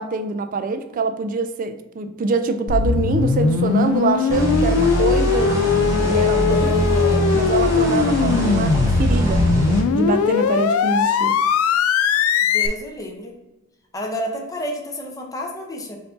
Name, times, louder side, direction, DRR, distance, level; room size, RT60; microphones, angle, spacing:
voice 1, 0.0-6.7 7.3-9.5 9.9-11.4, right 3 dB, 40° right, 9 dB, 0.3 m, -24 dB
sound 1, 2.7-12.7, left 6 dB, 85° left, 0.3 m, -20 dB
sound 2, 4.3-9.8, right 1 dB, 15° right, 0.9 m, -22 dB
voice 2, 6.5-7.3 12.4-13.4 13.9-16.0, equal, 15° left, 1 dB, 0.7 m, -30 dB
4.5 x 2.6 x 3.7 m, 1.0 s
head